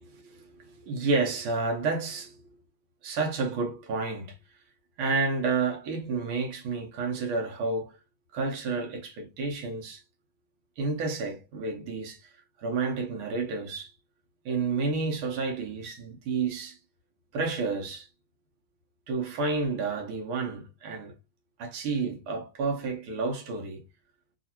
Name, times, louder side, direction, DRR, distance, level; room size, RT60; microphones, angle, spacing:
voice 1, 0.0-2.6 3.0-4.4 5.0-8.0 8.3-10.0 10.8-12.2 12.6-13.9 14.5-16.8 17.3-18.1 19.1-21.1 21.6-23.8, right 4 dB, 90° right, 1.8 m, -30 dB
4.0 x 2.4 x 2.8 m
omnidirectional pair, 2.3 m